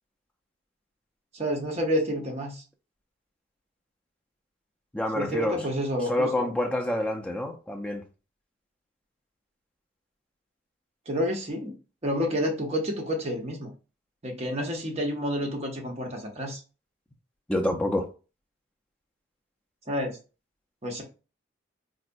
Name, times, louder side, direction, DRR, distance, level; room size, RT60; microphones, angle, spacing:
voice 1, 1.3-2.6 5.1-6.5 11.1-11.7 12.0-13.7 14.2-16.6 19.9-20.2 20.8-21.0, equal, 30° right, 0.7 m, -29 dB
voice 2, 4.9-5.6 6.1-8.0 17.5-18.1, left 1 dB, 5° left, 0.4 m, -27 dB
3.9 x 2.2 x 2.6 m
head